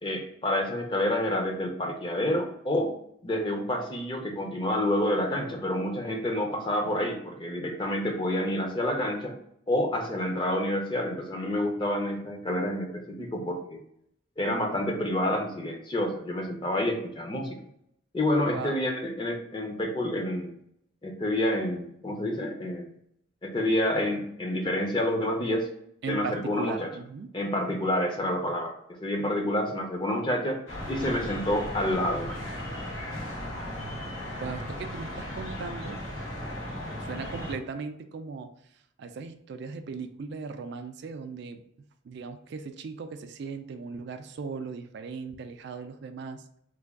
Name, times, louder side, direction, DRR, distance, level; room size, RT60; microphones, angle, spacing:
voice 1, 0.0-2.9 3.2-9.3 9.7-13.8 14.4-17.6 18.1-20.5 21.0-22.9 23.4-25.7 26.1-26.9 27.3-30.6 30.9-32.6, left 1 dB, 25° left, 2 dB, 0.5 m, -28 dB
voice 2, 18.5-18.8 26.0-27.3 34.4-36.0 37.0-38.5 39.0-41.6 42.0-46.4, right 5 dB, 55° right, 8 dB, 0.3 m, -38 dB
sound 1, 30.7-37.5, left 1 dB, 65° left, 1.4 m, -36 dB
3.3 x 2.2 x 3.5 m, 0.72 s
head